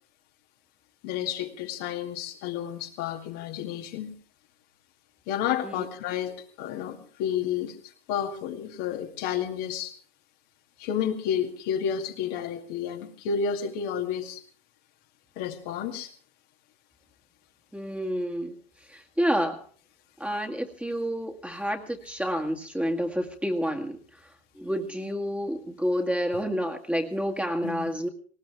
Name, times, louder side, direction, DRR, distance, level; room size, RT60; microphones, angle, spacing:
voice 1, 1.0-4.1 5.3-9.9 10.8-14.4 15.4-16.1 27.6-27.9, left 8 dB, 60° left, 3 dB, 2.4 m, -31 dB
voice 2, 17.7-18.6 18.9-19.7 20.2-24.0 24.6-28.1, equal, 5° right, 3 dB, 2.1 m, -29 dB
19.5 x 18.5 x 3.4 m, 0.43 s
hypercardioid pair, 85°, 31 cm